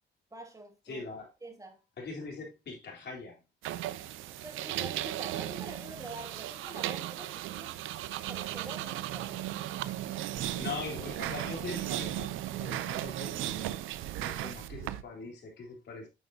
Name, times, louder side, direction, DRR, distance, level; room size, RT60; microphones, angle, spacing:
voice 1, 0.3-1.1 1.4-1.8 4.0-7.8 8.3-9.3, right 2 dB, 15° right, 2.3 m, -46 dB
voice 2, 0.9-1.3 2.0-3.4 10.5-12.3 12.6-13.7 14.2-16.1, left 4 dB, 60° left, 3.7 m, -41 dB
sound 1, 3.6-15.0, right 13 dB, 90° right, 0.6 m, -36 dB
9.3 x 7.1 x 2.8 m
cardioid pair, 90°, 20 cm